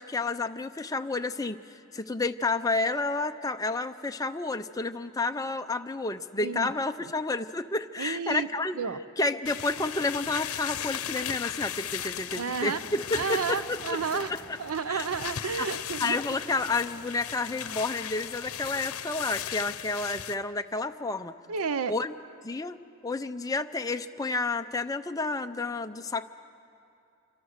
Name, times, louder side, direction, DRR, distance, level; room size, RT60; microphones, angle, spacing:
voice 1, 0.0-8.8 9.2-14.4 14.9-15.1 15.6-15.7 16.0-21.3 21.9-22.1 22.4-26.3, left 3 dB, 15° left, 7 dB, 0.6 m, -30 dB
voice 2, 8.0-8.5 8.8-9.0 12.3-12.8 13.1-14.3 14.6-16.2 21.5-21.9, right 6 dB, 85° right, 13 dB, 0.7 m, -31 dB
sound 1, 9.5-20.4, left 10 dB, 90° left, 0.7 m, -37 dB
Aircraft / Engine, 12.0-20.0, left 1 dB, ahead, 2.9 m, -52 dB
27.0 x 24.5 x 6.6 m, 2.7 s
head